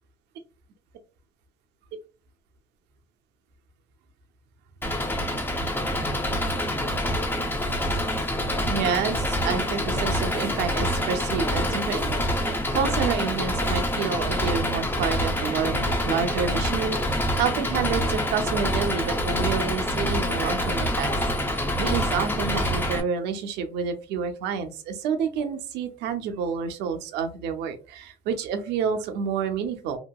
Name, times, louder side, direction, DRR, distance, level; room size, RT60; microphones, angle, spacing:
Engine, 4.8-23.0, equal, 10° left, 0.6 m, -26 dB
voice 1, 8.6-21.1 21.4-30.0, right 6 dB, 85° right, 6 dB, 0.6 m, -29 dB
2.8 x 2.7 x 2.2 m, 0.34 s
cardioid pair, 110°, 17 cm